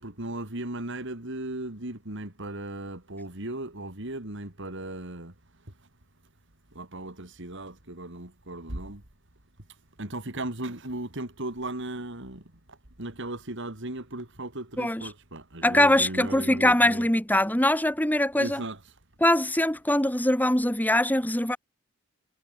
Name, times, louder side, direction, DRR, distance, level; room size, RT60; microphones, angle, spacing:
voice 1, 0.0-5.3 6.8-9.0 10.0-12.4 13.0-17.1 18.4-19.0, right 1 dB, 65° right, 3.7 m, -36 dB
voice 2, 14.8-15.1 15.6-18.6 19.2-21.6, left 1 dB, 10° left, 3.8 m, -22 dB
head